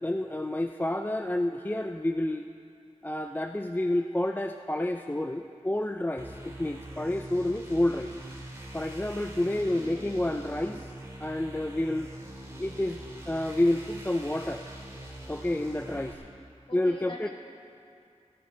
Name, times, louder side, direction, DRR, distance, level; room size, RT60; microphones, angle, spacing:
voice 1, 0.0-2.5 3.0-8.1 8.7-10.9 11.2-12.1 12.6-14.6 15.3-16.2 16.7-17.3, left 1 dB, 15° left, 6 dB, 0.4 m, -29 dB
sound 1, 6.2-16.1, right 1 dB, 25° right, 2.2 m, -44 dB
voice 2, 9.5-10.1 16.7-17.3, left 1 dB, 45° left, -3 dB, 2.4 m, -44 dB
18.0 x 13.0 x 3.8 m, 2.4 s
wide cardioid pair, 65°, 12 cm